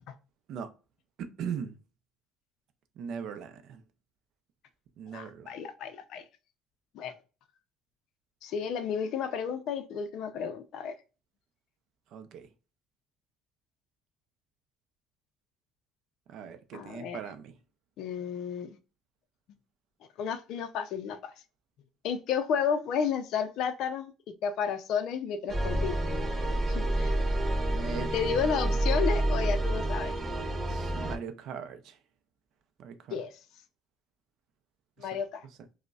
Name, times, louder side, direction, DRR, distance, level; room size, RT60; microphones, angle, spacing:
voice 1, 1.2-1.7 3.0-3.8 5.0-5.5 12.1-12.5 16.3-17.5 27.7-28.4 28.7-28.8 30.7-31.9 32.8-33.2 35.0-35.1, right 7 dB, 50° right, 0.4 m, -39 dB
voice 2, 5.1-6.2 6.9-7.1 8.4-11.0 16.7-17.2 18.0-18.7 20.2-21.2 22.0-24.1 24.4-25.9 26.7-27.1 28.1-30.2 33.1-33.3 35.0-35.5, left 7 dB, 55° left, 0.4 m, -32 dB
sound 1, 25.5-31.1, right 1 dB, 25° right, 0.7 m, -28 dB
4.9 x 2.1 x 2.3 m
cardioid pair, 175°, 0 cm